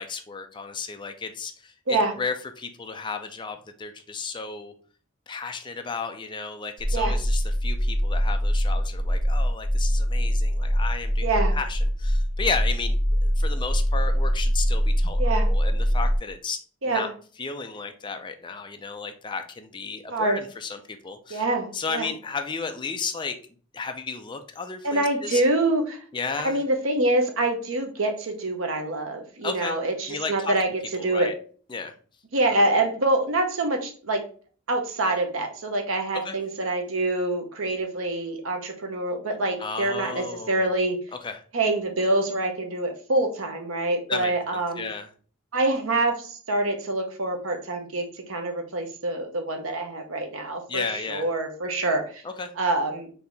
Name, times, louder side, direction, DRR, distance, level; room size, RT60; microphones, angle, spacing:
voice 1, 0.0-4.7 5.3-16.6 16.8-17.1 17.4-21.4 21.7-23.4 23.7-25.4 26.1-26.6 29.4-29.8 30.1-30.5 31.0-31.3 31.7-31.9 36.1-36.4 39.6-40.7 41.2-41.4 44.1-45.1 50.7-51.2 52.2-52.5, left 4 dB, 20° left, 6 dB, 0.4 m, -33 dB
sound 1, 6.8-16.2, equal, 35° right, 0.6 m, -23 dB
voice 2, 11.2-11.6 15.2-15.5 16.8-17.1 20.1-20.4 21.3-22.1 24.8-26.0 26.4-31.3 32.3-34.3 34.7-41.0 41.5-44.9 45.5-52.2 52.6-53.1, right 2 dB, 75° right, 4 dB, 0.9 m, -26 dB
4.1 x 2.8 x 3.4 m, 0.42 s
head